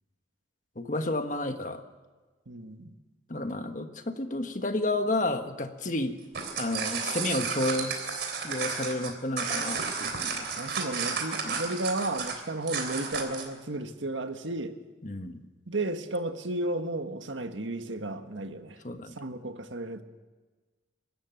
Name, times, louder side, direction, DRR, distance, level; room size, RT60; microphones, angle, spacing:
voice 1, 0.7-1.8 3.3-6.1 6.6-10.5 11.4-11.6 15.0-15.4 18.8-19.1, left 2 dB, 40° left, 7 dB, 1.4 m, -31 dB
voice 2, 2.5-3.0 10.6-14.7 15.7-18.8 19.1-20.0, right 2 dB, 85° right, 7 dB, 1.6 m, -33 dB
sound 1, 6.2-13.5, right 5 dB, 65° right, 3.5 m, -32 dB
23.5 x 13.0 x 9.2 m, 1.3 s
head